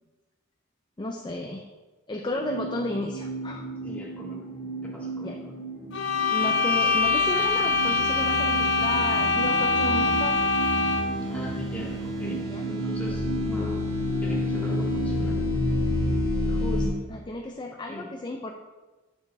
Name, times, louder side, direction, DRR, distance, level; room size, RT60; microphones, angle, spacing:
voice 1, 1.0-1.6 2.1-3.6 5.2-5.4 6.3-10.4 12.5-12.7 16.5-18.5, left 2 dB, 25° left, 2 dB, 0.5 m, -33 dB
sound 1, 2.3-16.4, right 3 dB, 25° right, 2.5 m, -37 dB
voice 2, 3.8-4.4 4.8-5.5 8.8-9.0 11.3-12.4 12.7-13.8 14.2-15.4 17.9-18.1, left 1 dB, 5° left, -5 dB, 2.0 m, -39 dB
sound 2, 5.9-11.2, left 3 dB, 60° left, 0.7 m, -24 dB
sound 3, 7.1-16.9, left 1 dB, 55° right, 2.8 m, -29 dB
9.0 x 6.2 x 3.5 m, 1.2 s
head